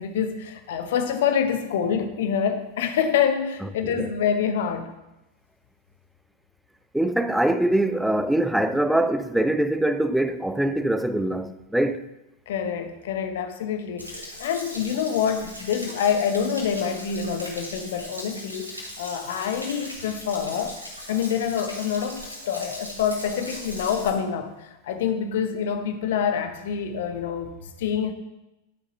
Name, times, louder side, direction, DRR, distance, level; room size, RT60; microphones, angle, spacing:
voice 1, 0.0-4.9 12.5-20.8 21.1-27.5 27.8-28.1, left 7 dB, 55° left, 1.1 m, -26 dB
voice 2, 6.9-12.0, right 1 dB, 5° right, 0.5 m, -23 dB
Stream / Splash splatter / Trickle dribble, 14.0-24.1, left 1 dB, 90° right, 2.7 m, -39 dB
11.5 x 7.3 x 4.0 m
figure-of-eight pair, 90°, 0 cm